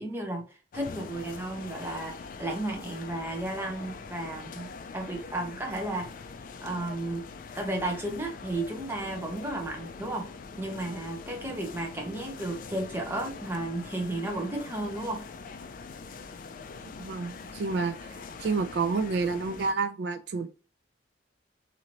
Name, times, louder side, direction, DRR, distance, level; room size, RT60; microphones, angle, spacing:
voice 1, 0.0-4.7 4.9-6.1 6.6-7.2 7.5-10.3 10.6-15.2, right 1 dB, 15° right, 2 dB, 0.6 m, -33 dB
sound 1, 0.7-19.7, left 4 dB, 45° left, 0.3 m, -43 dB
voice 2, 17.0-20.5, right 4 dB, 65° right, 7 dB, 0.3 m, -29 dB
3.0 x 2.6 x 2.7 m, 0.35 s
head